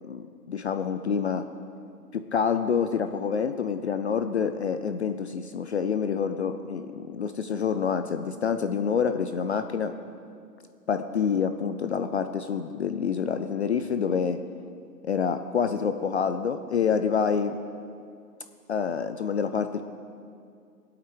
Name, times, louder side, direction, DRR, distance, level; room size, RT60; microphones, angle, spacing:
voice 1, 0.1-1.5 2.1-9.9 10.9-14.4 15.0-17.6 18.7-19.8, left 6 dB, 45° left, 9 dB, 0.4 m, -27 dB
17.0 x 8.6 x 4.6 m, 2.3 s
hypercardioid pair, 155°, 48 cm